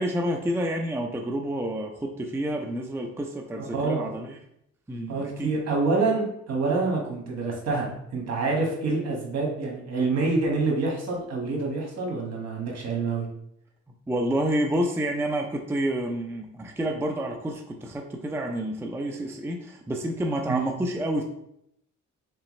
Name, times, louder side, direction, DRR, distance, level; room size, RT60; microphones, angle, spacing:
voice 1, 0.0-4.4 4.9-5.5 14.1-21.2, right 1 dB, 10° right, 2 dB, 0.4 m, -29 dB
voice 2, 3.6-4.1 5.1-13.3 20.5-20.7, right 3 dB, 60° right, -1 dB, 1.4 m, -27 dB
3.9 x 3.3 x 3.1 m, 0.74 s
cardioid pair, 90°, 30 cm